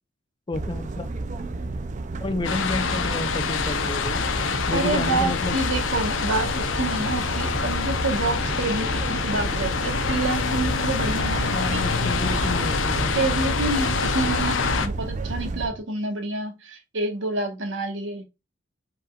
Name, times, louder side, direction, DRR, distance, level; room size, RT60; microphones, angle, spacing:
voice 1, 0.5-1.1 2.2-4.3 4.7-5.6 11.5-13.2, left 2 dB, 25° left, 0.5 m, -30 dB
sound 1, 0.5-15.7, right 3 dB, 40° right, 0.5 m, -32 dB
sound 2, 2.4-14.9, left 5 dB, 85° left, 0.7 m, -26 dB
sound 3, 3.0-15.8, right 1 dB, 10° right, 0.9 m, -42 dB
voice 2, 4.7-11.8 12.9-18.2, right 2 dB, 75° right, 1.3 m, -28 dB
5.1 x 4.3 x 2.4 m
head